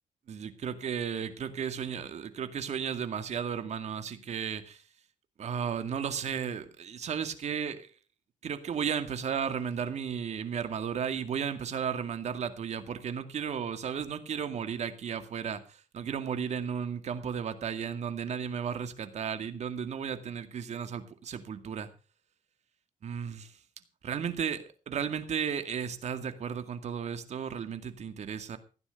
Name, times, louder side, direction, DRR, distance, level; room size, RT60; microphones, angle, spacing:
voice 1, 0.3-4.8 5.4-7.9 8.4-21.9 23.0-23.5 24.0-28.6, right 7 dB, 55° right, 9 dB, 2.1 m, -34 dB
16.0 x 9.8 x 5.2 m, 0.35 s
cardioid pair, 105°, 13 cm